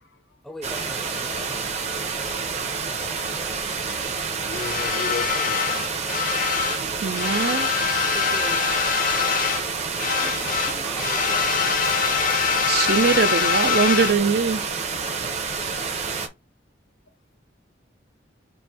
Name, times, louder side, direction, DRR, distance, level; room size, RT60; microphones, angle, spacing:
voice 1, 0.4-1.7 8.1-8.7 10.2-11.7, equal, ahead, 0.5 m, -41 dB
sound 1, 0.6-16.3, right 5 dB, 35° right, 0.8 m, -29 dB
voice 2, 4.5-5.8 11.8-12.8, left 4 dB, 85° left, 1.0 m, -36 dB
sound 2, 4.5-6.8 7.1-9.7 10.0-14.2, left 7 dB, 45° left, 0.5 m, -24 dB
voice 3, 6.8-7.7 12.7-14.6, right 5 dB, 55° right, 0.5 m, -22 dB
4.2 x 2.6 x 4.8 m
head